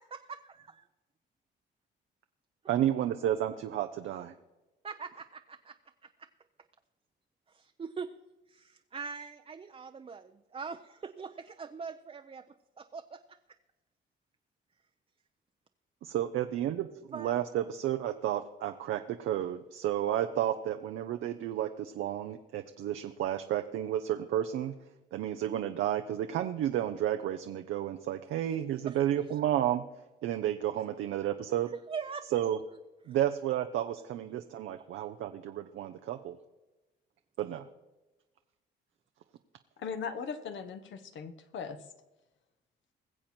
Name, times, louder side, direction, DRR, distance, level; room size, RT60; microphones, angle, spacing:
voice 1, 0.0-0.8 4.8-5.8 6.0-6.3 7.5-8.1 8.5-12.4 12.8-13.4 17.1-17.3 28.7-29.0 31.7-32.3 33.1-33.2, right 5 dB, 30° right, 7 dB, 0.6 m, -42 dB
voice 2, 2.7-4.3 16.0-24.7 25.1-29.8 30.2-31.7 32.3-32.6 33.1-36.4 37.4-37.7, right 11 dB, 80° right, 7 dB, 0.7 m, -31 dB
voice 3, 39.8-41.8, left 6 dB, 70° left, 9 dB, 1.2 m, -39 dB
21.0 x 7.5 x 4.4 m, 1.1 s
cardioid pair, 90°, 20 cm